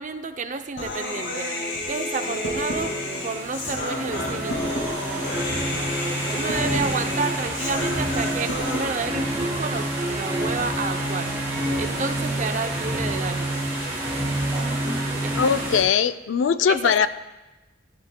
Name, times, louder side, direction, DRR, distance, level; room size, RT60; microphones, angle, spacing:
voice 1, 0.0-1.5 1.9-3.0 3.2-4.9 6.3-11.4 11.8-13.7 15.2-15.4 16.7-17.1, right 4 dB, 40° right, 8 dB, 0.5 m, -30 dB
Human voice, 0.8-8.8, left 1 dB, 75° left, 2.0 m, -30 dB
sound 1, 2.4-15.8, right 1 dB, 15° right, 3.1 m, -28 dB
voice 2, 15.4-17.1, left 7 dB, 90° left, 13 dB, 0.4 m, -21 dB
14.5 x 12.0 x 2.2 m, 1.1 s
head